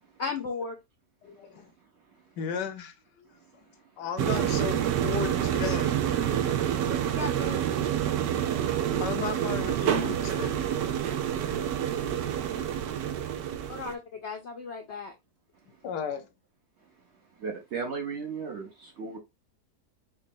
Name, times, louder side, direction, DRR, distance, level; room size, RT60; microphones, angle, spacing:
voice 1, 0.2-0.8 6.9-7.6 13.7-15.1, left 5 dB, 70° left, 0.6 m, -35 dB
voice 2, 1.2-1.7 2.4-3.4 4.0-6.0 9.0-10.7 15.8-16.3, left 7 dB, 85° left, 1.3 m, -35 dB
sound 1, 4.2-13.9, right 10 dB, 85° right, 1.2 m, -28 dB
voice 3, 17.4-19.2, right 5 dB, 55° right, 0.8 m, -35 dB
5.1 x 2.2 x 2.6 m
omnidirectional pair, 1.8 m